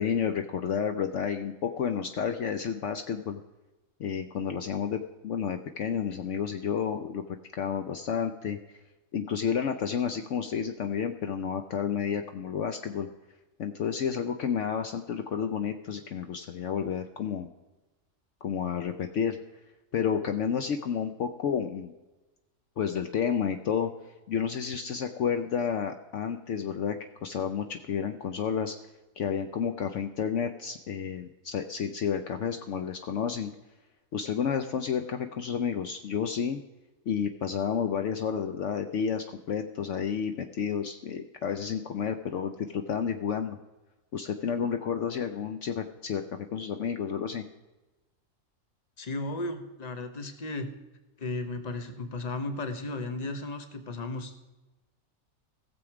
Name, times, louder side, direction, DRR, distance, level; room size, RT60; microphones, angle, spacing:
voice 1, 0.0-3.4 4.0-7.2 7.6-8.6 9.1-13.1 13.6-17.5 18.4-19.4 19.9-21.9 22.8-23.9 24.3-28.8 29.2-33.5 34.1-36.6 37.1-43.6 44.1-47.4, left 7 dB, 65° left, 7 dB, 1.0 m, -31 dB
voice 2, 49.0-50.7 51.2-54.3, left 2 dB, 30° left, 8 dB, 1.1 m, -35 dB
16.5 x 7.2 x 4.8 m, 1.1 s
omnidirectional pair, 1.4 m